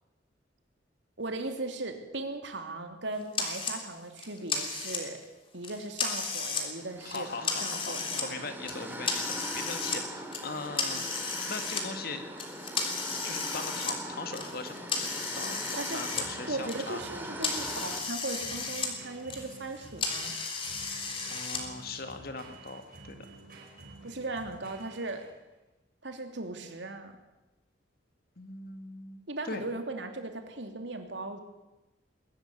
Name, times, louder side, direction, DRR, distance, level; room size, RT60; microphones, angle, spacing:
voice 1, 1.2-5.2 5.5-8.5 15.8-16.0 16.5-20.3 24.0-25.3 26.0-27.2 29.3-31.4, right 2 dB, 70° right, 6 dB, 2.9 m, -38 dB
sound 1, 3.3-3.8 4.2-5.2 5.6-6.7 7.0-8.3 8.7-10.0 10.3-11.8 12.4-16.3 16.6-18.9 19.2-21.6, left 4 dB, 30° left, 3.5 m, -34 dB
sound 2, 6.7-18.0, right 1 dB, 10° right, 2.6 m, -42 dB
voice 2, 7.0-12.2 12.9-17.0 21.3-23.2 28.4-29.7, left 3 dB, 55° left, 8 dB, 2.3 m, -40 dB
sound 3, 14.8-25.5, right 2 dB, 50° right, 4.5 m, -51 dB
21.5 x 13.5 x 9.9 m, 1.0 s
head